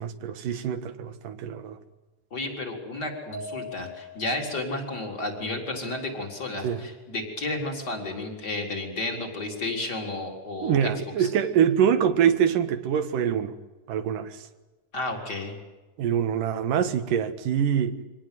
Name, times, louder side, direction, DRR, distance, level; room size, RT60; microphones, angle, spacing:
voice 1, 0.0-1.8 6.6-6.8 10.6-13.5 13.9-14.4 16.0-18.0, right 8 dB, 80° right, 10 dB, 3.1 m, -24 dB
voice 2, 2.3-10.9 11.2-11.3 14.9-15.5, left 2 dB, 30° left, 2 dB, 4.6 m, -32 dB
sound 1, 3.3-4.5, left 3 dB, 75° left, 7.0 m, -40 dB
25.5 x 18.5 x 9.3 m, 1.2 s
omnidirectional pair, 3.7 m